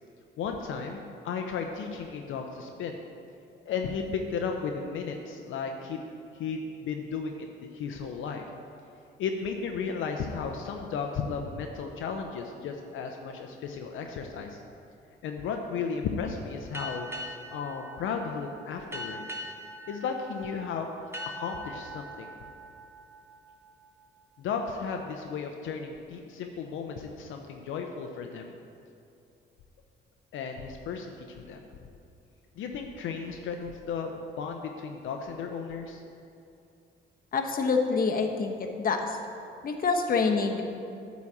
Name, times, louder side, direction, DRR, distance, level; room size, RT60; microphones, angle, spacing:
voice 1, 0.4-3.0 3.7-6.0 6.4-7.3 7.7-8.4 9.2-14.6 15.2-17.1 17.5-19.2 19.9-20.9 21.4-22.3 24.4-28.5 30.3-31.6 32.6-36.0, left 5 dB, 80° left, 3 dB, 0.6 m, -34 dB
sound 1, 16.7-24.0, equal, 10° right, 1.3 m, -42 dB
voice 2, 37.3-39.2 39.6-40.6, left 4 dB, 45° left, 3 dB, 1.0 m, -26 dB
9.5 x 4.1 x 7.2 m, 2.6 s
cardioid pair, 90°, 20 cm